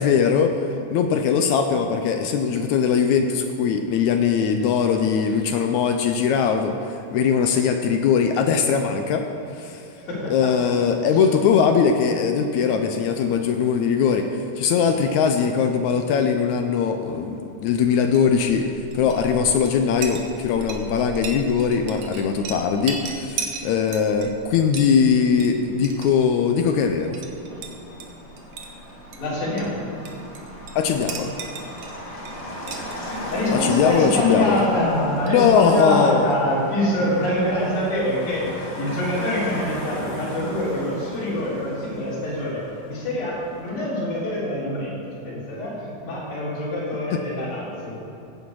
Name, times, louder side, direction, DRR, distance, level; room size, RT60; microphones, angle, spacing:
voice 1, 0.0-9.3 9.5-9.8 10.3-18.7 18.9-27.2 30.8-31.3 33.5-34.6 35.3-36.3 47.1-47.2, left 6 dB, 80° left, 5 dB, 1.7 m, -21 dB
voice 2, 9.9-10.7 11.1-11.2 29.2-29.9 33.3-45.0 45.2-48.0, left 1 dB, 60° left, -9 dB, 5.0 m, -25 dB
Chink clink, 18.1-35.8, right 5 dB, 65° right, 2.1 m, -38 dB
Motor vehicle (road), 24.9-43.7, left 1 dB, 35° left, 2.9 m, -37 dB
15.5 x 10.5 x 4.8 m, 2.8 s
omnidirectional pair, 4.1 m